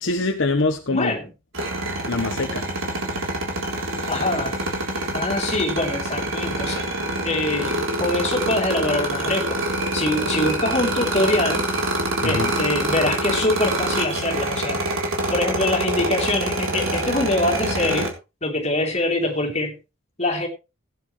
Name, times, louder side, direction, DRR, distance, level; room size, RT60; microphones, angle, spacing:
voice 1, 0.0-1.1 2.1-2.6 12.2-12.5, left 3 dB, 60° left, 1.1 m, -24 dB
voice 2, 0.9-1.3 4.1-4.6 5.1-6.8 7.2-9.6 9.9-11.6 12.2-14.8 15.3-18.1 18.4-19.7 20.2-20.5, left 2 dB, 30° left, 3.2 m, -24 dB
sound 1, 1.5-18.1, right 1 dB, 85° right, 3.3 m, -26 dB
16.0 x 9.8 x 3.2 m
head